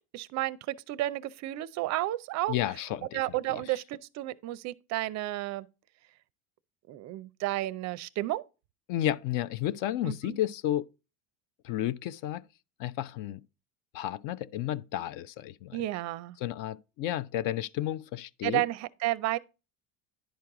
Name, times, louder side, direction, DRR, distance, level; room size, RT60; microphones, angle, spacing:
voice 1, 0.1-2.5 3.1-5.7 6.9-8.4 10.0-10.4 15.7-16.4 18.4-19.4, right 16 dB, 40° right, 0.5 m, -32 dB
voice 2, 2.5-3.6 8.9-10.9 11.6-12.4 12.8-13.4 13.9-15.8 16.4-18.6, left 12 dB, 50° left, 0.4 m, -32 dB
10.5 x 4.6 x 3.6 m
supercardioid pair, 120°, 43 cm